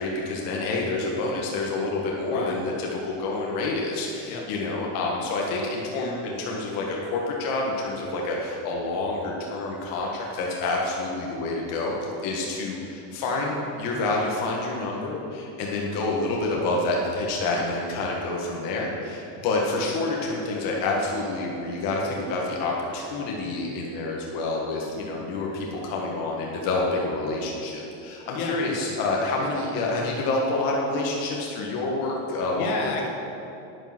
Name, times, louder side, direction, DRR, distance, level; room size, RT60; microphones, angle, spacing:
voice 1, 0.0-2.7 3.0-11.9 12.2-32.8, left 2 dB, 50° left, -2 dB, 1.6 m, -28 dB
voice 2, 2.2-2.6 4.3-4.4 28.3-28.6 29.5-29.6 32.6-33.1, left 4 dB, 75° left, 0 dB, 2.0 m, -31 dB
9.5 x 9.0 x 6.1 m, 2.8 s
supercardioid pair, 160°, 44 cm